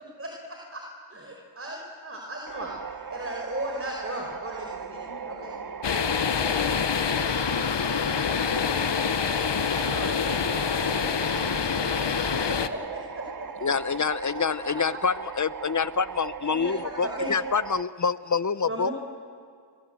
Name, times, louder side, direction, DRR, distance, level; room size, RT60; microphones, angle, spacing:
voice 1, 0.2-0.8 1.1-5.5 9.6-11.6 12.3-13.5 14.6-15.0 16.4-17.3 17.7-17.8 18.6-18.9, right 1 dB, 25° right, 1 dB, 4.7 m, -37 dB
sound 1, 2.5-17.8, right 6 dB, 40° right, 1.0 m, -38 dB
voice 2, 4.8-5.9 12.0-12.8, left 3 dB, 70° left, -1 dB, 3.5 m, -46 dB
sound 2, 5.8-12.7, left 7 dB, 55° left, 1.2 m, -26 dB
voice 3, 13.6-18.9, left 5 dB, 35° left, 16 dB, 0.8 m, -26 dB
28.5 x 23.0 x 7.8 m, 2.3 s
cardioid pair, 50°, 50 cm